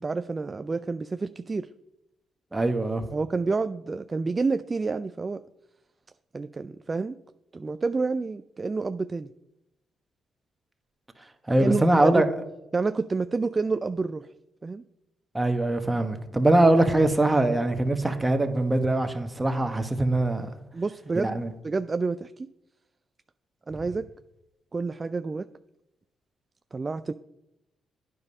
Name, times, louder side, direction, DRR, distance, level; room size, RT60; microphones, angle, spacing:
voice 1, 0.0-1.7 3.1-5.4 6.3-7.2 7.5-9.3 11.6-12.2 12.7-14.3 14.6-14.8 20.7-21.4 21.6-22.5 23.7-24.1 24.7-25.5 26.7-27.1, right 4 dB, 35° right, 0.3 m, -29 dB
voice 2, 2.5-3.0 11.5-12.2 15.3-20.5 21.1-21.5, right 2 dB, 15° right, 1.2 m, -22 dB
9.5 x 5.3 x 5.4 m
supercardioid pair, 60°, 0 cm